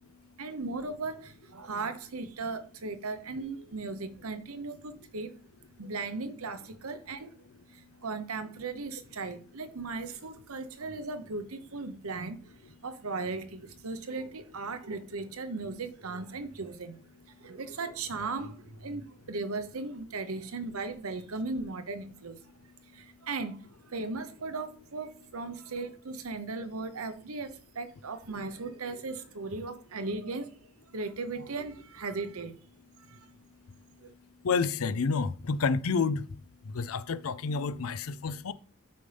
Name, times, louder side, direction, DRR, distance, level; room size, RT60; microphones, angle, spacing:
voice 1, 0.4-5.3 5.8-7.3 7.7-12.4 12.8-17.0 17.4-22.4 22.9-30.5 30.9-32.5 33.1-33.3 34.0-34.1, right 3 dB, 80° right, 0.9 m, -37 dB
voice 2, 34.4-36.3 36.6-38.5, left 5 dB, 75° left, 0.5 m, -29 dB
8.4 x 5.5 x 3.4 m
head